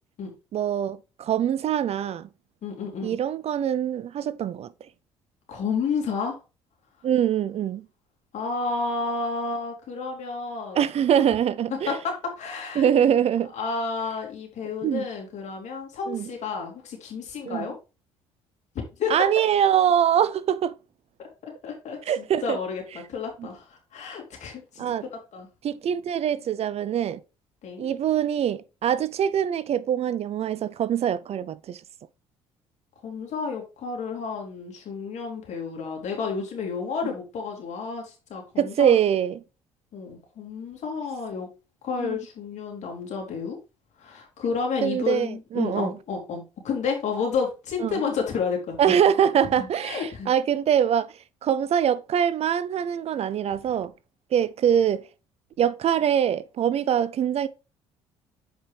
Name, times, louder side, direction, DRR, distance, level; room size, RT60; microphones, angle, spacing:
voice 1, 0.5-2.3 3.0-4.7 7.0-7.8 10.7-12.0 12.8-13.5 14.8-15.1 16.1-16.3 17.5-17.7 19.1-20.7 22.1-22.6 24.8-25.0 25.6-27.2 27.8-31.8 38.6-39.4 42.0-42.2 44.8-45.9 47.8-48.0 48.8-51.1 51.4-53.9 54.3-55.0 55.6-57.5, right 9 dB, 50° right, 0.5 m, -23 dB
voice 2, 2.6-3.2 5.5-6.4 8.3-10.8 11.7-13.1 13.5-17.7 19.0-19.1 21.2-22.8 23.1-25.5 27.6-27.9 33.0-38.9 39.9-41.5 41.8-43.6 44.0-48.9 49.6-50.3, left 5 dB, 60° left, 3.1 m, -31 dB
7.4 x 5.2 x 3.4 m
hypercardioid pair, 60°, 14 cm